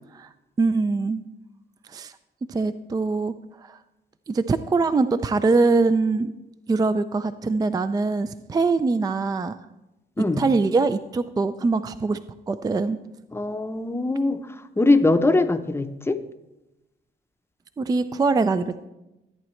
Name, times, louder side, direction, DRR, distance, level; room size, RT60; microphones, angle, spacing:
voice 1, 0.6-1.2 1.9-2.2 2.5-3.8 4.3-6.3 6.7-9.5 10.4-12.2 12.5-13.0 17.8-18.8, right 3 dB, 20° right, 12 dB, 0.4 m, -23 dB
voice 2, 10.2-10.5 13.3-14.4 14.8-16.2, left 2 dB, 10° left, 8 dB, 0.7 m, -21 dB
14.0 x 8.7 x 3.2 m, 0.97 s
cardioid pair, 90°, 20 cm